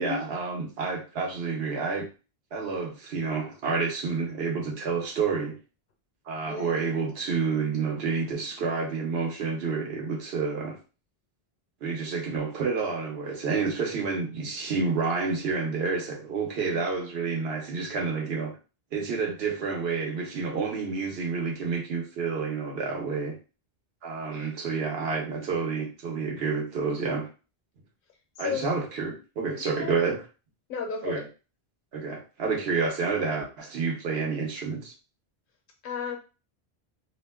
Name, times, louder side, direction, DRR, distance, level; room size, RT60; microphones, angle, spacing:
voice 1, 0.0-2.1 2.5-5.6 6.3-10.8 11.8-18.6 18.9-23.4 24.0-27.3 28.4-30.2 31.0-31.3 31.9-34.9, right 4 dB, 75° right, 0.9 m, -29 dB
voice 2, 29.6-29.9 30.7-31.2 35.8-36.2, left 6 dB, 60° left, 0.8 m, -34 dB
2.4 x 2.1 x 3.3 m
omnidirectional pair, 1.1 m